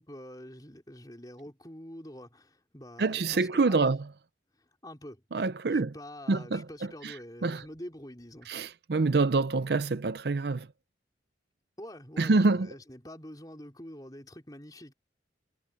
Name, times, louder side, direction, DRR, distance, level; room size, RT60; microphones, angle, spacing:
voice 1, 0.0-3.9 4.6-5.2 5.7-8.5 11.8-14.9, left 1 dB, 20° left, 4.4 m, -46 dB
voice 2, 3.0-4.0 5.3-5.9 6.3-6.6 7.0-7.1 7.4-7.6 8.5-10.7 12.2-12.7, right 3 dB, 65° right, 0.6 m, -26 dB
head